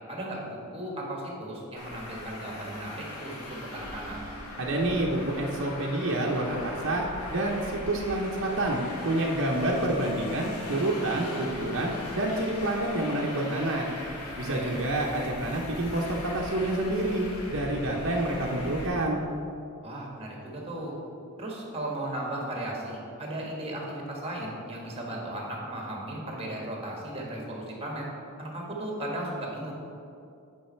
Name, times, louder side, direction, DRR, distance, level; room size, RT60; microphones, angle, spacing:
voice 1, 0.1-4.2 14.5-14.7 19.8-21.0 21.4-28.0 28.4-29.7, right 1 dB, 25° right, -1 dB, 1.4 m, -36 dB
Traffic noise roadway noise, 1.8-18.9, left 1 dB, 80° left, 1.3 m, -40 dB
voice 2, 4.6-13.9 14.4-17.2 17.5-19.3, right 1 dB, 55° right, -2 dB, 0.8 m, -28 dB
9.0 x 4.9 x 4.4 m, 2.6 s
head